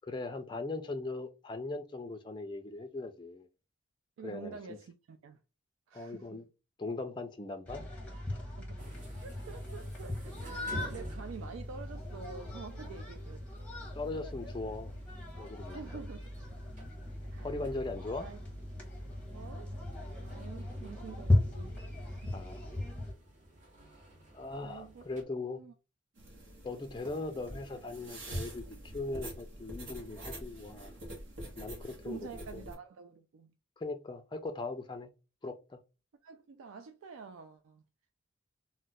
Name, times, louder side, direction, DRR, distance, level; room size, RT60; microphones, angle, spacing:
voice 1, 0.0-3.5 4.2-4.8 5.9-6.4 6.8-7.8 8.3-8.4 13.9-14.9 15.4-15.8 17.4-18.3 22.3-22.7 24.3-25.6 26.6-28.6 28.9-31.0 31.6-32.7 33.8-35.1 35.4-35.8, left 3 dB, 20° left, 0.3 m, -39 dB
voice 2, 4.2-5.4 5.9-6.4 8.6-9.0 9.2-13.9 15.7-16.4 17.2-17.5 18.2-18.4 19.3-19.8 20.2-21.8 22.1-22.5 24.6-25.1 25.4-25.7 32.0-33.5 36.2-37.8, right 5 dB, 85° right, 0.4 m, -48 dB
sound 1, 7.7-23.1, left 1 dB, 5° left, 0.7 m, -37 dB
sound 2, 8.8-25.2, right 1 dB, 35° right, 0.9 m, -54 dB
sound 3, 26.2-32.7, right 1 dB, 70° right, 0.9 m, -45 dB
2.3 x 2.1 x 3.9 m
head